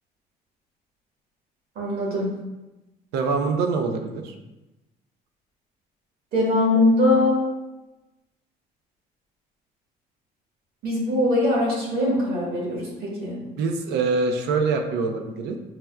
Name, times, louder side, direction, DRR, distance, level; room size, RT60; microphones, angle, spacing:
voice 1, 1.7-2.3 6.3-7.4 10.8-13.4, left 1 dB, 70° right, -3 dB, 1.4 m, -21 dB
voice 2, 3.1-4.3 13.6-15.6, right 4 dB, 85° right, 5 dB, 0.5 m, -24 dB
5.6 x 2.2 x 2.3 m, 1.0 s
cardioid pair, 110°, 17 cm